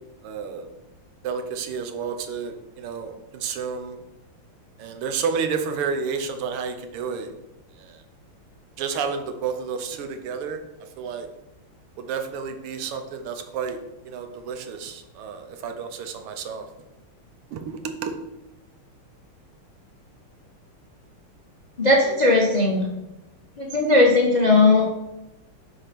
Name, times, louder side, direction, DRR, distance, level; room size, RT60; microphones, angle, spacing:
voice 1, 0.2-0.7 1.2-4.0 4.8-7.3 7.8-8.0 8.8-10.6 11.0-11.3 12.0-13.8 14.1-16.7 17.5-18.2, right 6 dB, 80° right, 6 dB, 1.7 m, -30 dB
voice 2, 21.8-22.9 23.6-24.9, left 2 dB, 45° left, -2 dB, 0.5 m, -18 dB
5.1 x 4.7 x 5.8 m, 0.92 s
omnidirectional pair, 2.4 m